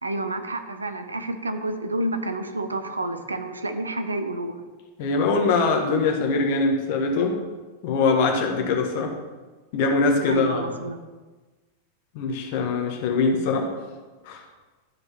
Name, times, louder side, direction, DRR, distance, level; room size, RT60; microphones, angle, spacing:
voice 1, 0.0-4.5 10.3-11.0, right 2 dB, 80° right, 8 dB, 0.8 m, -29 dB
voice 2, 5.0-7.4 7.8-9.1 9.7-10.8 12.1-13.7 14.2-14.4, left 3 dB, 50° left, 2 dB, 1.7 m, -22 dB
12.5 x 5.1 x 5.9 m, 1.3 s
figure-of-eight pair, 90°, 0 cm